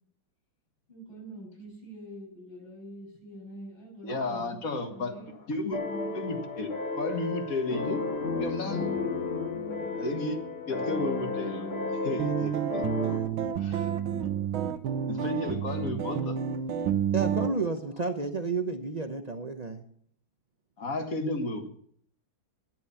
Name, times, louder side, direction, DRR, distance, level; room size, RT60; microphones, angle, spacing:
voice 1, 0.9-6.1 8.6-9.1 9.5-10.0, right 1 dB, 70° left, -2 dB, 7.9 m, -44 dB
voice 2, 4.0-5.8 6.1-8.0 8.4-8.8 10.0-10.4 10.6-12.8 13.6-13.9 15.1-16.4 20.8-21.7, left 2 dB, 45° left, 5 dB, 2.0 m, -33 dB
sound 1, 5.7-13.2, left 3 dB, 90° left, 3.0 m, -33 dB
sound 2, 12.2-17.5, right 8 dB, 85° right, 1.7 m, -29 dB
voice 3, 17.1-19.8, right 4 dB, 60° right, 6 dB, 0.4 m, -31 dB
12.5 x 10.5 x 7.0 m, 0.63 s
omnidirectional pair, 2.2 m